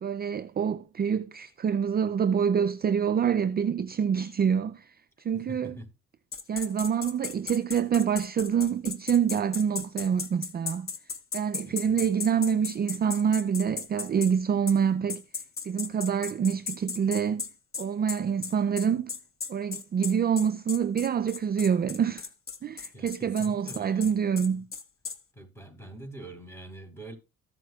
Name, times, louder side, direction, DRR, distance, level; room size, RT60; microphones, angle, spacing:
voice 1, 0.0-4.9 5.2-5.8 6.5-10.9 11.3-15.2 15.6-17.4 17.8-19.1 19.5-22.3 22.6-24.7, right 7 dB, 30° right, 0.4 m, -26 dB
voice 2, 5.3-5.9 11.6-12.1 22.9-24.1 24.6-24.7 25.4-27.1, right 1 dB, 10° left, 4.1 m, -44 dB
sound 1, 6.3-14.3 14.7-14.8 15.1-25.2, left 5 dB, 45° left, 1.3 m, -36 dB
14.5 x 7.8 x 2.3 m
cardioid pair, 90°, 30 cm